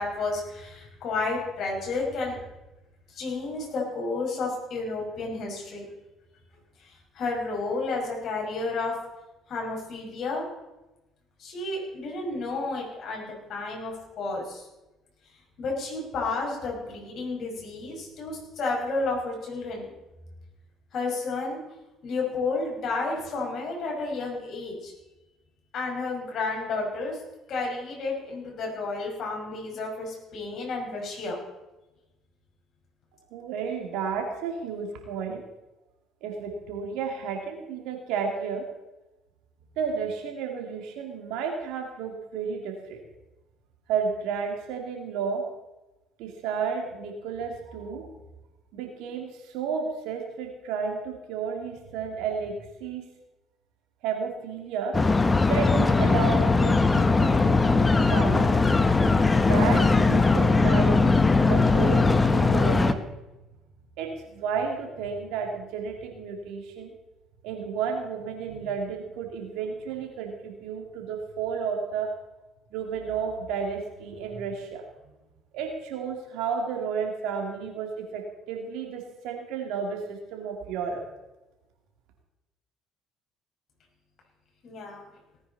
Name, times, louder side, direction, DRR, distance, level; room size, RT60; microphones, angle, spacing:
voice 1, 0.0-2.4 3.1-5.9 6.8-8.9 9.5-10.5 11.4-14.7 15.6-19.9 20.9-21.6 22.0-24.9 25.7-27.2 27.5-31.4 84.6-85.1, left 3 dB, 55° left, -1 dB, 5.7 m, -31 dB
voice 2, 33.3-35.4 36.2-38.6 39.8-43.0 43.9-45.4 46.2-48.1 48.7-53.0 54.0-55.0 55.4-58.5 59.3-61.1 61.5-63.1 64.0-66.9 67.4-72.1 72.7-75.0 75.5-81.0, right 6 dB, 70° right, 2 dB, 2.8 m, -32 dB
sound 1, 54.9-62.9, left 3 dB, 25° left, 1.1 m, -20 dB
18.5 x 9.6 x 4.3 m, 1.0 s
hypercardioid pair, 60°, 0 cm